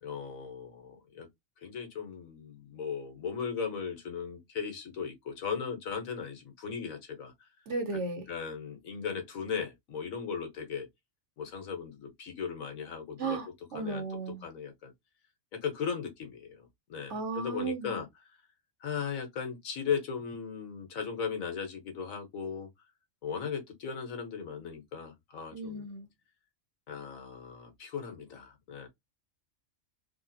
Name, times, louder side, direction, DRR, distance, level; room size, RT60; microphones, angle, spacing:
voice 1, 0.0-1.3 1.6-7.3 8.3-10.9 11.4-13.4 13.7-14.9 15.5-18.1 18.8-22.7 23.2-25.9 26.9-28.9, left 6 dB, 85° left, 1.5 m, -37 dB
voice 2, 7.7-8.2 13.2-14.4 17.1-18.0 25.5-26.1, right 3 dB, 65° right, 1.3 m, -35 dB
3.6 x 2.5 x 2.6 m
omnidirectional pair, 1.4 m